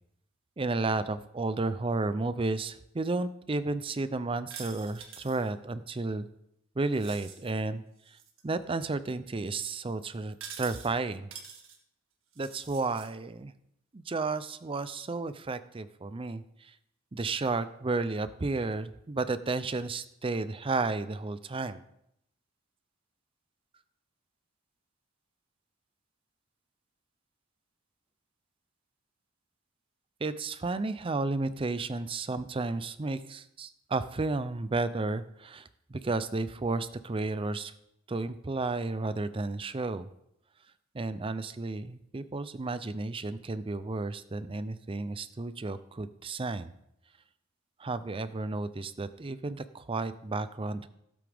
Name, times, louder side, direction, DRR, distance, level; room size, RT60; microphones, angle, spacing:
voice 1, 0.6-6.3 6.8-8.2 8.4-11.3 12.4-13.5 13.9-16.8 17.1-21.8 30.2-37.7 38.1-40.1 40.9-46.7 47.8-50.9, right 3 dB, 25° right, 13 dB, 0.5 m, -32 dB
sound 1, 4.5-5.5 6.9-7.5 8.0-8.4 10.3-10.9 11.3-11.8 12.3-13.1, right 7 dB, 75° right, 1.8 m, -46 dB
16.0 x 8.6 x 3.5 m, 0.78 s
head